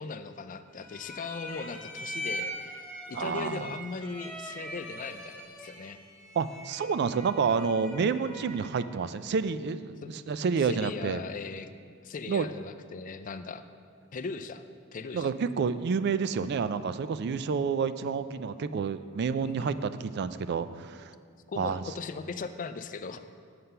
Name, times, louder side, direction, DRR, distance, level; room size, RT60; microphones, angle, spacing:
voice 1, 0.0-6.0 10.0-10.1 10.6-11.7 12.0-13.6 14.1-14.6 14.9-15.3 19.4-19.8 21.5-23.2, left 4 dB, 40° left, 10 dB, 0.4 m, -39 dB
sound 1, 0.7-8.9, equal, 5° left, 1.5 m, -42 dB
voice 2, 3.1-3.7 6.4-10.0 10.3-11.2 12.3-12.5 15.1-21.1 21.6-21.8, right 5 dB, 55° right, 13 dB, 0.3 m, -29 dB
7.7 x 6.7 x 5.5 m, 2.2 s
head